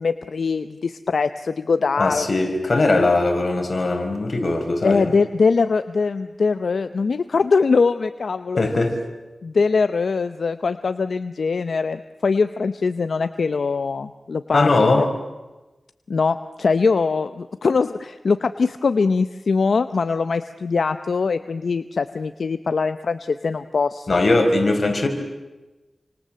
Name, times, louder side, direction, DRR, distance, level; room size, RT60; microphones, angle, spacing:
voice 1, 0.0-2.3 4.8-8.6 9.4-14.9 16.1-24.2, left 4 dB, 85° left, 11 dB, 0.8 m, -22 dB
voice 2, 2.0-5.1 8.6-8.9 14.5-15.1 24.1-25.1, left 2 dB, 60° left, 4 dB, 5.3 m, -20 dB
29.0 x 26.0 x 7.7 m, 1.1 s
wide cardioid pair, 55°, 0 cm